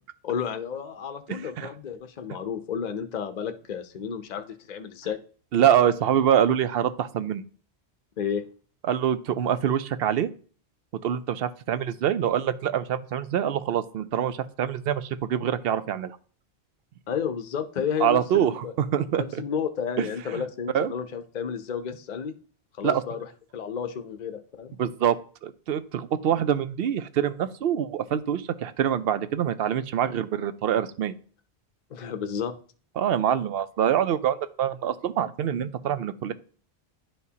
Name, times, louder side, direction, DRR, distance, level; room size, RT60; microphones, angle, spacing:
voice 1, 0.2-5.2 8.2-8.4 17.1-18.7 19.1-22.3 22.8-23.2 23.5-24.8 31.9-32.5, left 7 dB, 50° left, 8 dB, 0.6 m, -32 dB
voice 2, 1.3-1.7 5.5-7.4 8.8-10.3 11.0-16.2 18.0-19.4 20.0-20.1 20.3-20.4 20.7-20.9 22.8-23.0 24.8-25.2 25.4-31.2 33.0-36.3, right 9 dB, 65° right, 13 dB, 0.7 m, -25 dB
10.5 x 4.4 x 2.8 m, 0.42 s
omnidirectional pair, 1.1 m